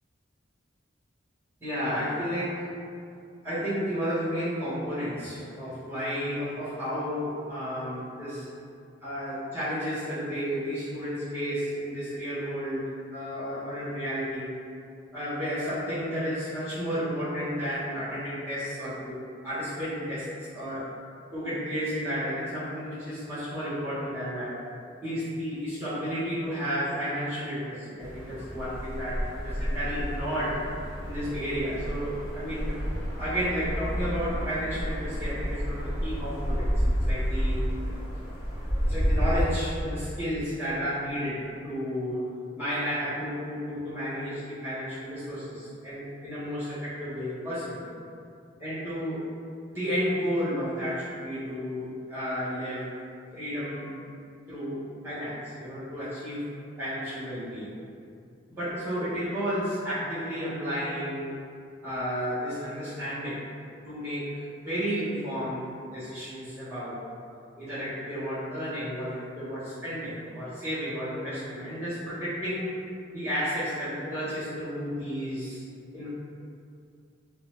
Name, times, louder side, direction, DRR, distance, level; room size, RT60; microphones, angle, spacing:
voice 1, 1.6-2.6 3.4-8.5 9.0-14.6 15.1-20.9 21.3-24.6 25.0-30.6 31.0-36.7 37.1-37.7 38.9-42.2 42.5-47.8 48.6-49.3 49.7-52.9 53.3-53.9 54.5-56.5 56.8-57.7 58.5-61.4 61.8-63.4 63.8-67.0 67.6-72.7 73.1-75.6 75.9-76.1, equal, 10° right, -13 dB, 1.3 m, -32 dB
sound 1, 28.0-39.4, equal, 25° left, 0.9 m, -30 dB
3.9 x 2.1 x 2.8 m, 2.4 s
head